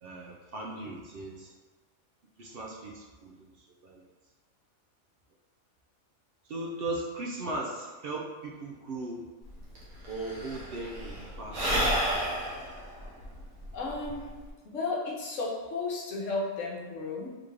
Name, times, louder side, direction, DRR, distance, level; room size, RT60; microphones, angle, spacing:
voice 1, 0.0-1.5 2.4-3.5 3.8-4.0 6.4-9.3 10.1-11.7, right 2 dB, 60° right, -1 dB, 0.7 m, -38 dB
Sigh / Breathing, 9.5-9.6 9.8-14.5, equal, 75° right, 1.4 m, -31 dB
voice 2, 13.7-14.3 14.6-17.4, left 3 dB, 65° left, -2 dB, 1.2 m, -33 dB
3.7 x 3.5 x 3.3 m, 1.3 s
omnidirectional pair, 1.4 m